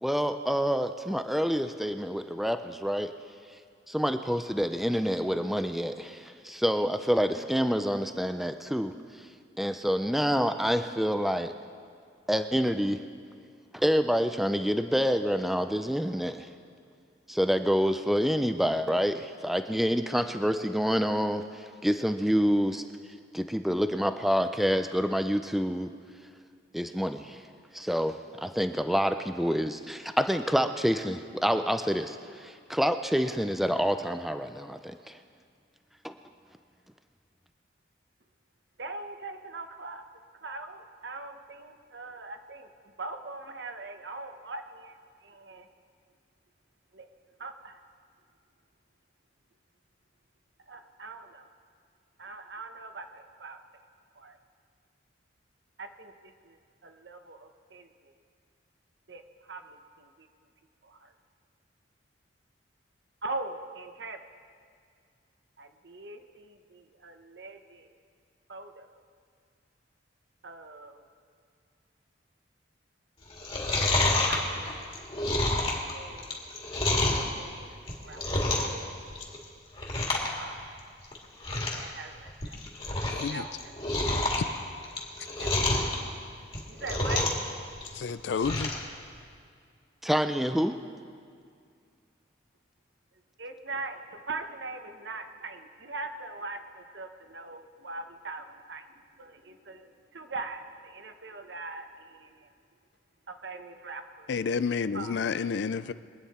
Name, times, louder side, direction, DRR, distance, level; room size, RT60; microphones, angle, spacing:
voice 1, 0.0-3.1 3.9-8.9 9.6-11.5 12.3-13.0 13.7-16.5 17.3-22.8 23.3-25.9 26.7-27.4 27.7-35.2 36.0-36.1 90.0-90.8, equal, ahead, 7 dB, 0.4 m, -27 dB
voice 2, 38.8-40.0 40.4-42.7 43.0-45.0 45.2-45.7 46.9-47.1 47.4-47.8 50.7-51.5 52.2-53.6 54.2-54.4 55.8-56.1 56.4-57.9 59.1-59.2 59.5-60.3 60.8-61.1 63.2-64.2 65.6-67.9 68.5-68.9 70.4-71.0 74.2-74.8 75.9-76.5 77.0-77.7 78.0-78.2 80.4-80.8 81.7-82.6 83.3-83.5 85.4-85.8 86.7-87.2 93.4-94.0 94.3-98.8 99.2-102.5 103.3-104.3 104.9-105.1, right 3 dB, 65° right, 6 dB, 1.0 m, -41 dB
Chewing mastication, 73.3-77.3 77.7-78.8 79.1-79.4 79.8-80.3 80.6-80.7 81.1-81.2 81.4-81.8 82.3-83.3 83.6-85.9 86.4-87.5 87.8-88.8 89.2-89.3, left 2 dB, 30° left, 2.1 m, -28 dB
voice 3, 83.1-83.4 84.4-84.5 87.9-88.7 104.3-105.9, left 5 dB, 65° left, 15 dB, 0.4 m, -30 dB
23.5 x 9.4 x 4.3 m, 2.2 s
head